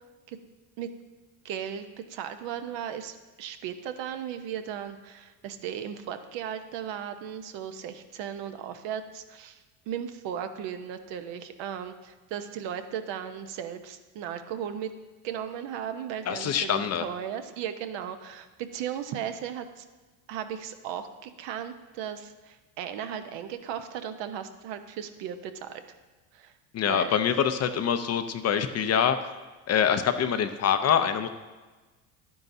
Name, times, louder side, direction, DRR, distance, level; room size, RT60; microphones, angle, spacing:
voice 1, 1.4-14.9 15.2-18.5 18.7-19.8 20.3-26.0 26.3-26.5 26.9-27.1, right 9 dB, 65° right, 8 dB, 0.9 m, -36 dB
voice 2, 16.3-17.0 26.7-29.2 29.7-31.3, left 8 dB, 35° left, 9 dB, 0.5 m, -25 dB
11.0 x 9.4 x 2.7 m, 1.2 s
supercardioid pair, 95°, 47 cm